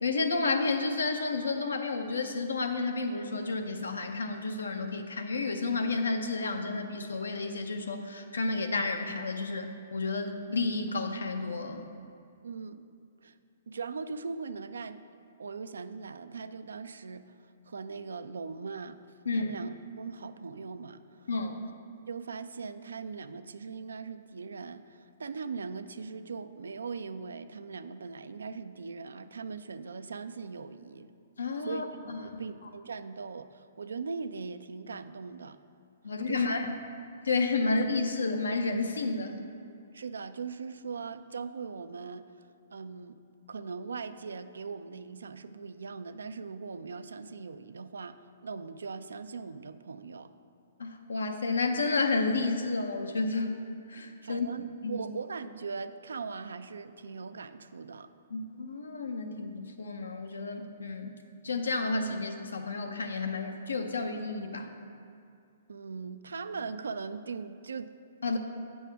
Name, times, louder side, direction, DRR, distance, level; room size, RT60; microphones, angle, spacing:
voice 1, 0.0-11.9 19.3-19.5 21.3-21.7 31.4-32.4 36.0-36.7 37.2-39.4 50.8-53.5 53.9-54.5 54.8-55.0 58.3-61.1 61.4-64.7 68.2-68.4, left 3 dB, 90° left, 6 dB, 0.7 m, -31 dB
voice 2, 12.4-12.8 13.2-13.4 13.7-15.0 15.4-19.0 19.3-21.3 22.1-31.1 31.6-35.6 36.3-36.5 39.9-42.3 42.7-43.2 43.5-50.3 54.2-58.1 65.7-68.0, right 5 dB, 85° right, 12 dB, 0.3 m, -40 dB
8.3 x 6.3 x 3.4 m, 2.4 s
hypercardioid pair, 135°, 0 cm